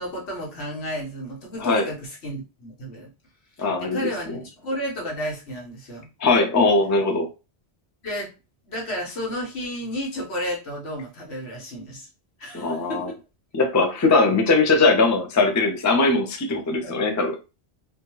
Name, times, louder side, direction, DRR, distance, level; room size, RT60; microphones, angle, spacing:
voice 1, 0.0-3.1 3.8-6.1 8.0-8.3 8.6-12.1 12.4-13.2 16.8-17.0, equal, 85° left, 1.4 m, -32 dB
voice 2, 3.6-4.0 4.3-4.4 6.2-7.3 12.5-13.1 13.5-17.4, left 3 dB, 25° left, 0.4 m, -20 dB
2.8 x 2.3 x 3.0 m
omnidirectional pair, 1.1 m